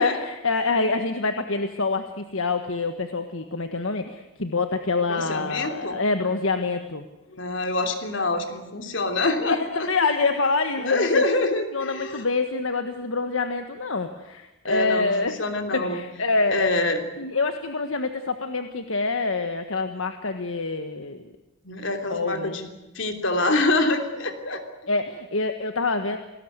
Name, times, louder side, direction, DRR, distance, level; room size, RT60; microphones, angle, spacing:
voice 1, 0.0-7.0 9.5-11.2 11.7-15.4 15.7-16.7 17.2-21.2 22.1-22.6 24.9-26.2, left 3 dB, 80° left, 7 dB, 1.5 m, -26 dB
voice 2, 5.1-6.0 7.3-9.6 10.8-12.2 14.7-15.1 15.4-16.0 16.5-17.0 21.6-22.7 22.9-24.6, left 2 dB, 60° left, 6 dB, 3.2 m, -25 dB
28.5 x 19.5 x 8.2 m, 1.0 s
head